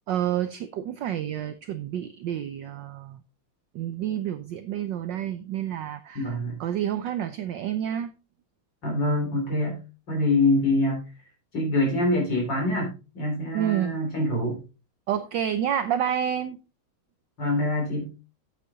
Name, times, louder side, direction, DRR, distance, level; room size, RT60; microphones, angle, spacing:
voice 1, 0.1-3.2 3.7-8.1 13.5-13.9 15.1-16.6, right 10 dB, 70° right, 11 dB, 1.2 m, -29 dB
voice 2, 6.2-6.6 8.8-9.8 10.1-11.0 11.5-14.6 17.4-18.1, left 2 dB, 55° left, 0 dB, 4.0 m, -25 dB
8.6 x 8.5 x 3.9 m, 0.31 s
omnidirectional pair, 2.3 m